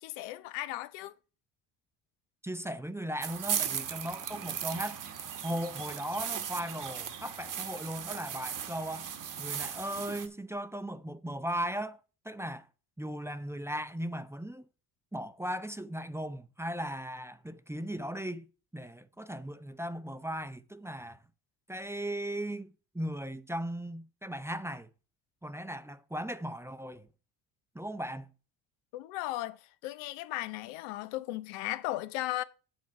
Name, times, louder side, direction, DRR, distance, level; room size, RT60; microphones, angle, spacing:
voice 1, 0.0-1.1 28.9-32.4, left 16 dB, 85° left, 0.7 m, -36 dB
voice 2, 2.4-5.0 5.4-9.1 9.4-12.7 13.0-14.7 15.1-18.5 18.7-21.2 21.7-24.9 25.4-27.1 27.7-28.3, equal, 5° right, 0.6 m, -37 dB
sound 1, 3.2-10.3, right 8 dB, 45° right, 1.2 m, -37 dB
7.6 x 6.1 x 4.7 m
supercardioid pair, 70°, 44 cm